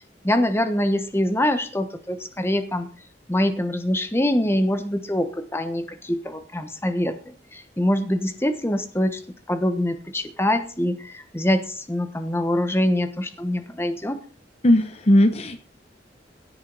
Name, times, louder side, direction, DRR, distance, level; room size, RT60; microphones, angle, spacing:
voice 1, 0.2-2.9 3.3-9.2 9.5-14.2, left 1 dB, 15° left, 9 dB, 1.1 m, -24 dB
voice 2, 14.6-15.6, left 1 dB, 35° left, 9 dB, 0.8 m, -17 dB
16.5 x 8.6 x 4.0 m, 0.42 s
head